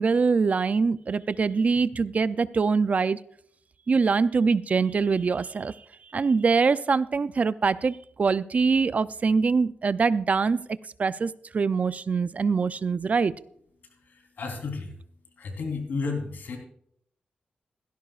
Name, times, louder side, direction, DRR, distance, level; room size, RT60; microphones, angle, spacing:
voice 1, 0.0-3.2 3.9-5.7 6.1-10.6 11.0-13.3, right 4 dB, 45° right, 16 dB, 0.5 m, -24 dB
voice 2, 14.0-14.9 15.4-16.6, left 4 dB, 75° left, 3 dB, 3.7 m, -32 dB
17.0 x 16.0 x 2.5 m, 0.66 s
cardioid pair, 90°, 3 cm